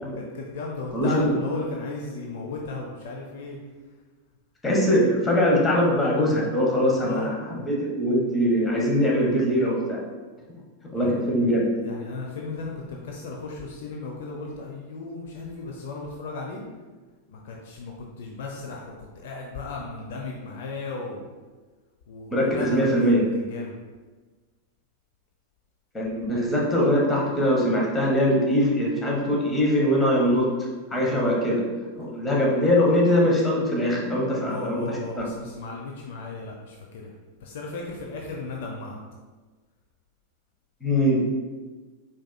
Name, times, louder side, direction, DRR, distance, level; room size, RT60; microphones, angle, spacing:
voice 1, 0.1-3.6 7.0-7.3 11.0-11.2 11.8-16.6 17.3-21.2 22.1-23.7 34.4-37.1 37.4-39.0, left 3 dB, 55° left, -1 dB, 0.6 m, -35 dB
voice 2, 0.9-1.3 4.6-10.0 10.9-11.7 22.3-23.2 25.9-30.5 30.9-31.6 31.9-35.3 40.8-41.4, equal, 15° left, -2 dB, 1.1 m, -22 dB
4.8 x 4.4 x 2.2 m, 1.3 s
figure-of-eight pair, 90°, 0 cm